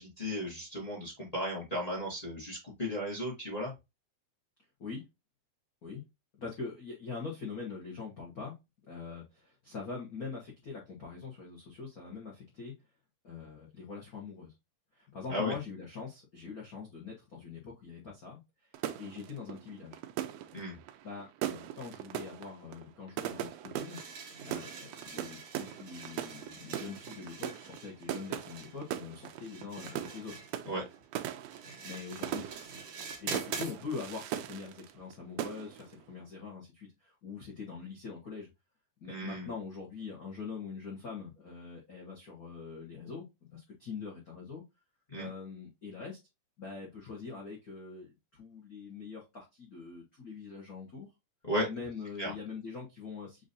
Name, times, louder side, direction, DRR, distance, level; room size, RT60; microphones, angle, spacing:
voice 1, 0.0-3.7 15.3-15.5 20.5-20.7 30.6-30.8 39.1-39.5 45.1-45.3 51.4-51.7 52.2-52.3, equal, 35° left, 0.6 m, -35 dB
voice 2, 6.3-8.6 8.9-12.7 13.2-14.5 14.9-18.4 18.9-20.0 21.0-24.0 24.4-30.5 31.8-32.5 33.2-38.5 39.0-43.3 43.5-44.6 45.1-46.2 46.6-51.1 51.7-53.4, left 5 dB, 75° left, 0.8 m, -43 dB
sound 1, 18.7-35.1 35.4-35.9, right 11 dB, 85° right, 1.4 m, -40 dB
sound 2, 23.8-33.8, right 4 dB, 60° right, 2.1 m, -46 dB
7.0 x 2.7 x 2.6 m
omnidirectional pair, 3.5 m